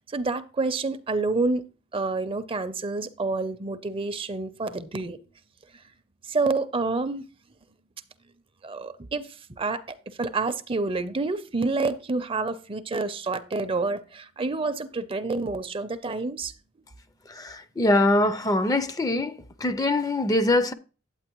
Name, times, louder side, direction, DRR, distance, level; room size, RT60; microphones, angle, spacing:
voice 1, 0.1-1.6 1.9-5.2 6.3-7.2 8.6-9.8 10.2-16.5, right 3 dB, 30° right, 0.6 m, -28 dB
voice 2, 17.4-19.3 19.6-20.7, left 1 dB, 20° left, 0.5 m, -23 dB
8.8 x 8.8 x 3.0 m
head